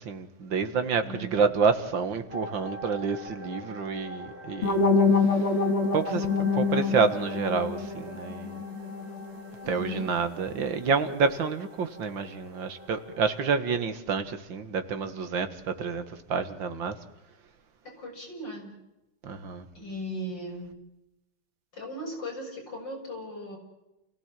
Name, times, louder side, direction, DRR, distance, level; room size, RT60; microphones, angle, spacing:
voice 1, 0.0-4.9 5.3-5.5 5.9-8.6 9.7-17.0 19.2-19.7, right 5 dB, 60° right, 2.4 m, -28 dB
voice 2, 1.0-1.4 9.6-10.1 18.0-18.7 19.7-20.7 21.7-23.6, equal, 55° left, 8.0 m, -37 dB
sound 1, 2.3-13.5, equal, 5° right, 8.0 m, -44 dB
sound 2, 4.6-9.5, left 4 dB, 90° left, 4.4 m, -26 dB
29.5 x 17.0 x 7.7 m
omnidirectional pair, 2.4 m